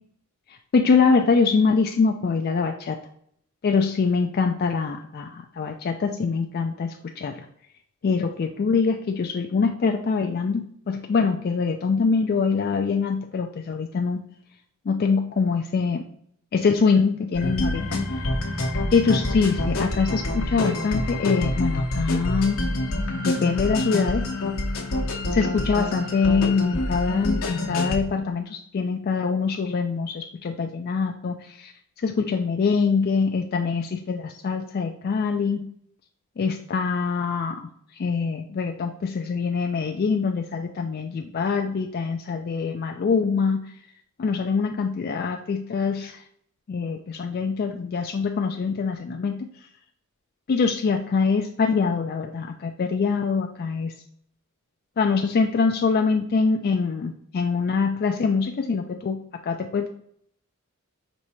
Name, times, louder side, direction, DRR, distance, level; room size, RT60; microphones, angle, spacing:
voice 1, 0.5-3.0 3.6-7.4 8.0-14.2 14.9-16.0 16.5-18.0 18.9-22.7 23.2-24.2 25.3-31.7 32.0-35.7 36.4-37.6 37.9-43.6 44.2-46.2 46.7-49.5 50.5-53.9 55.0-59.2 59.4-59.9, left 5 dB, 45° left, 4 dB, 0.3 m, -24 dB
sound 1, 17.3-28.0, left 1 dB, 70° left, 1.0 m, -27 dB
5.3 x 3.1 x 3.0 m, 0.66 s
head